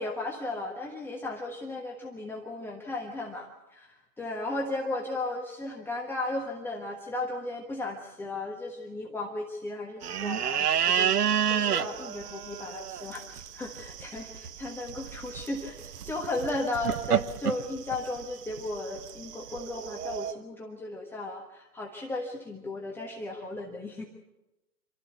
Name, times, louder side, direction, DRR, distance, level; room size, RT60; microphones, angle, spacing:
voice 1, 0.0-11.1 11.5-15.8 16.0-24.0, left 2 dB, 5° left, -1 dB, 1.3 m, -35 dB
sound 1, 10.0-20.3, right 9 dB, 70° right, 1.0 m, -31 dB
26.5 x 13.5 x 8.2 m, 1.0 s
hypercardioid pair, 130°, 47 cm